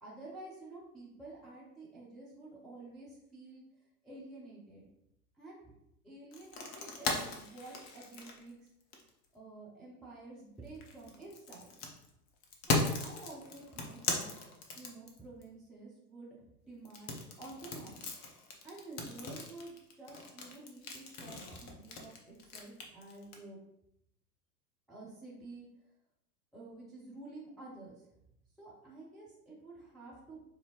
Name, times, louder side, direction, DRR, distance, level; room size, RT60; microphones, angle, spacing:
voice 1, 0.0-3.6 4.0-4.9 5.4-5.7 6.0-8.7 9.3-11.7 12.7-14.3 14.7-18.1 18.6-23.6 24.9-25.9 26.5-28.1 28.6-30.4, right 2 dB, ahead, -6 dB, 0.3 m, -50 dB
sound 1, 6.3-9.3 10.7-15.4 16.9-23.4, left 3 dB, 35° left, 0.8 m, -37 dB
4.4 x 2.7 x 2.9 m, 0.80 s
figure-of-eight pair, 95°, 48 cm